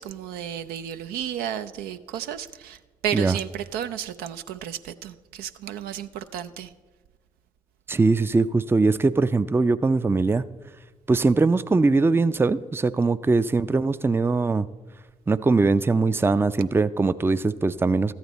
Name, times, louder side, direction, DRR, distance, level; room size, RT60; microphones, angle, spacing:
voice 1, 0.0-6.7, right 10 dB, 70° right, 0.5 m, -33 dB
voice 2, 7.9-10.4 11.1-14.7 15.3-18.1, right 3 dB, 15° right, 0.4 m, -21 dB
13.5 x 8.8 x 4.1 m
hypercardioid pair, 45°, 16 cm